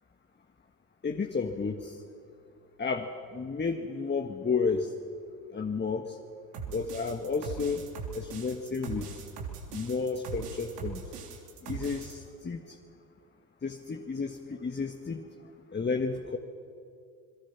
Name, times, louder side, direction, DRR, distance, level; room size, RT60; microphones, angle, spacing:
voice 1, 1.0-2.0 2.8-4.9 5.5-6.2 6.7-7.9 8.1-9.2 9.7-11.0 11.6-12.8 13.6-15.2 15.7-16.4, left 4 dB, 20° left, 4 dB, 1.8 m, -32 dB
sound 1, 6.5-12.1, right 6 dB, 75° right, 3.5 m, -40 dB
29.5 x 22.5 x 6.0 m, 2.5 s
hypercardioid pair, 65°, 47 cm